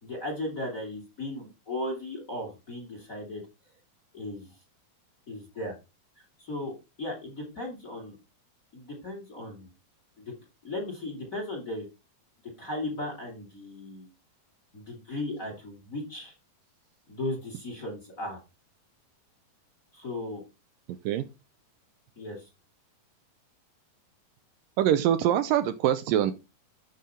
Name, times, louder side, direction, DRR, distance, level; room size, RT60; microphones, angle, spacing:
voice 1, 0.0-3.4 4.1-4.5 5.3-5.8 6.2-8.2 8.7-9.7 10.2-10.3 10.6-11.9 12.6-14.1 14.7-16.3 17.1-18.4 19.9-20.4 22.2-22.5, left 1 dB, 25° left, 2 dB, 2.5 m, -36 dB
voice 2, 24.8-26.3, right 11 dB, 80° right, 11 dB, 2.1 m, -24 dB
11.0 x 5.4 x 4.2 m, 0.27 s
omnidirectional pair, 4.4 m